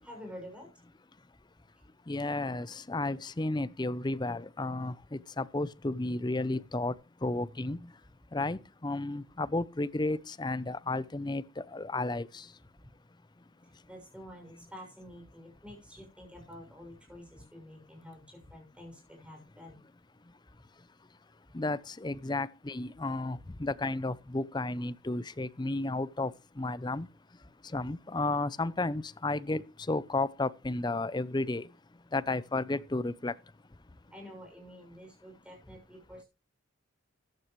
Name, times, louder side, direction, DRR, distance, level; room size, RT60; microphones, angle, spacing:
voice 1, 0.0-0.7 1.7-1.8 12.8-12.9 13.6-19.8 34.1-36.3, equal, 5° right, 6.6 m, -49 dB
voice 2, 2.1-6.9 7.2-7.9 8.3-12.5 21.5-26.3 26.6-27.1 27.7-31.6 32.1-33.3, left 2 dB, 20° left, 0.5 m, -33 dB
14.5 x 12.0 x 3.2 m
head